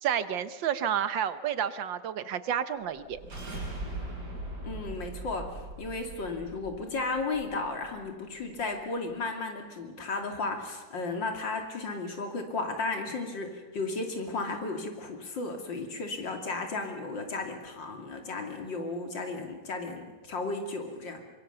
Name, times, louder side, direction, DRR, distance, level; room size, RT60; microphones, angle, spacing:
voice 1, 0.0-3.2, right 9 dB, 85° right, 13 dB, 1.8 m, -30 dB
sound 1, 2.9-8.0, right 2 dB, 65° right, 5.5 m, -40 dB
voice 2, 4.6-21.2, left 3 dB, 80° left, 4 dB, 3.4 m, -34 dB
24.5 x 22.5 x 6.8 m, 1.3 s
omnidirectional pair, 2.0 m